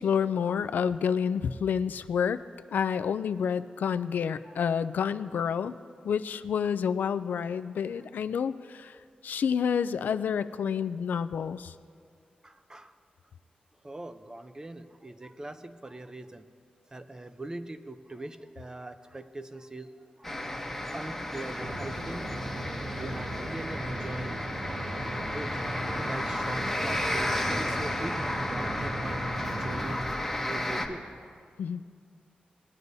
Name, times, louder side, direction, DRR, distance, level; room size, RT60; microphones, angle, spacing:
voice 1, 0.0-2.4 2.7-5.8 6.0-9.0 9.2-11.7 31.6-31.8, left 7 dB, 85° left, 12 dB, 0.3 m, -29 dB
voice 2, 12.4-12.9 13.8-16.5 16.9-20.6 20.9-22.4 22.9-25.6 26.0-30.1 30.4-31.1, right 2 dB, 25° right, 10 dB, 0.5 m, -42 dB
sound 1, 20.2-30.9, left 1 dB, 5° left, 1.0 m, -33 dB
sound 2, 21.6-30.0, right 1 dB, 75° right, 1.4 m, -38 dB
19.0 x 9.5 x 2.7 m, 2.1 s
wide cardioid pair, 85°, 3 cm